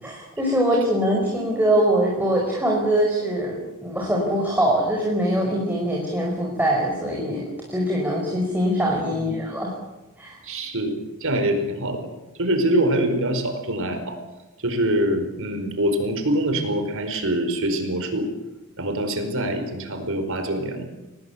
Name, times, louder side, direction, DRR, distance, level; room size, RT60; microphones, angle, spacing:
voice 1, 0.0-9.7 10.2-10.4, right 1 dB, 10° right, -2 dB, 5.2 m, -23 dB
voice 2, 10.4-12.1 12.4-14.2 14.6-18.3 18.8-20.9, right 1 dB, 65° right, 7 dB, 4.9 m, -24 dB
25.0 x 19.0 x 8.5 m, 1.1 s
head